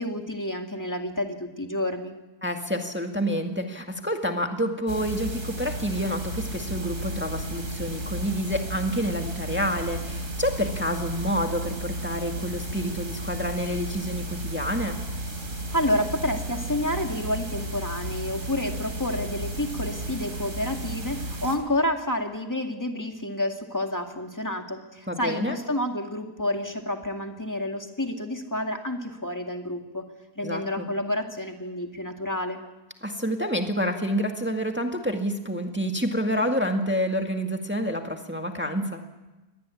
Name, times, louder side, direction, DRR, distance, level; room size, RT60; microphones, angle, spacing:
voice 1, 0.0-2.1 15.7-30.1 30.4-32.6, left 1 dB, 10° left, 4 dB, 2.2 m, -29 dB
voice 2, 2.4-15.0 25.1-25.6 30.4-30.9 33.0-39.0, equal, 5° right, 4 dB, 1.9 m, -28 dB
sound 1, 4.9-21.6, right 1 dB, 55° right, 3.7 m, -33 dB
24.0 x 19.5 x 8.5 m, 1.1 s
omnidirectional pair, 1.6 m